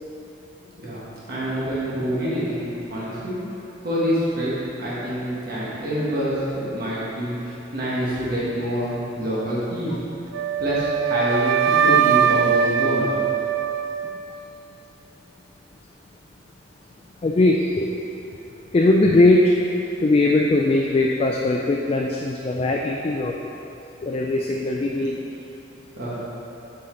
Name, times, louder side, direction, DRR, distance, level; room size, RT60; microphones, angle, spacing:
voice 1, 0.8-3.4 3.8-10.0 10.6-13.1 26.0-26.2, equal, 50° right, -8 dB, 1.3 m, -26 dB
Wind instrument woodwind instrument, 10.3-14.4, right 7 dB, 75° right, 0.3 m, -21 dB
voice 2, 17.2-17.9 18.7-19.7 20.0-23.3 24.0-25.2, left 2 dB, 30° left, 0 dB, 0.3 m, -20 dB
7.4 x 5.6 x 3.9 m, 2.9 s
head